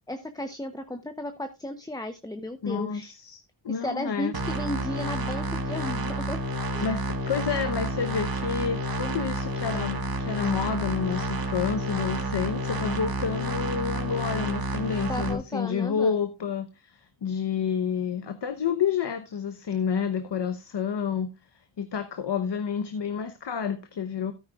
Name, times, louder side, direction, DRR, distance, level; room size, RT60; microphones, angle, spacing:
voice 1, 0.1-3.1 3.7-6.4 6.7-6.9 15.1-16.2, left 1 dB, 10° left, 0.9 m, -34 dB
voice 2, 2.6-3.4 3.6-4.3 6.8-21.3 21.8-24.3, left 7 dB, 60° left, 1.0 m, -29 dB
sound 1, 4.3-15.3, right 1 dB, 50° right, 1.7 m, -30 dB
13.0 x 9.6 x 2.4 m
cardioid pair, 60°, 46 cm